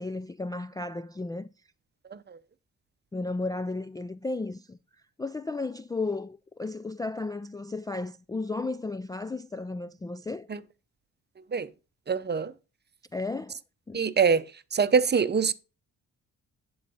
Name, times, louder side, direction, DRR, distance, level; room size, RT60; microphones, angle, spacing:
voice 1, 0.0-1.5 3.1-4.8 5.2-10.5 13.1-13.6 13.9-14.0, left 3 dB, 10° left, 0.3 m, -34 dB
voice 2, 12.1-12.5 13.9-14.4 14.7-15.5, right 6 dB, 30° right, 0.7 m, -24 dB
11.0 x 3.9 x 5.5 m
cardioid pair, 70°, 34 cm